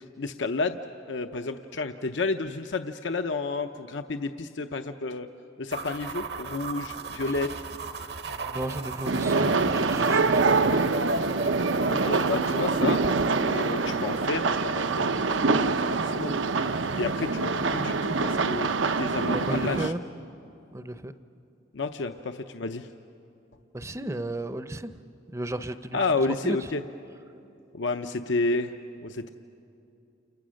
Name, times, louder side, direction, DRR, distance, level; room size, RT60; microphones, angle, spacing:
voice 1, 0.2-0.8 1.1-5.3 5.6-7.5 11.9-13.0 13.4-16.4 16.9-18.7 19.0-19.9 21.7-22.9 25.9-26.8 27.7-28.7 29.0-29.3, left 3 dB, 75° left, 7 dB, 0.7 m, -30 dB
sound 1, 5.7-14.3, right 3 dB, 60° right, 0.9 m, -35 dB
voice 2, 8.3-11.0 19.3-20.0 20.7-21.1 23.7-25.0 25.3-26.0 26.4-26.7, right 1 dB, 15° right, 11 dB, 0.6 m, -34 dB
sound 2, 9.1-19.9, right 4 dB, 80° right, 0.7 m, -25 dB
29.5 x 29.0 x 6.4 m, 2.7 s
head